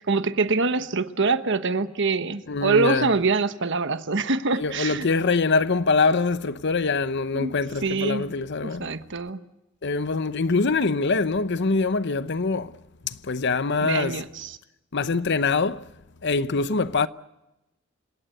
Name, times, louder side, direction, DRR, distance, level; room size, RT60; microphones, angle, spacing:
voice 1, 0.1-5.1 7.3-8.2 8.6-9.4 13.8-14.6, right 3 dB, 65° right, 1.2 m, -25 dB
voice 2, 2.5-3.1 4.6-8.8 9.8-12.8 13.0-14.2 14.9-15.9 16.2-17.1, left 4 dB, 60° left, 0.8 m, -24 dB
28.0 x 17.5 x 7.9 m
head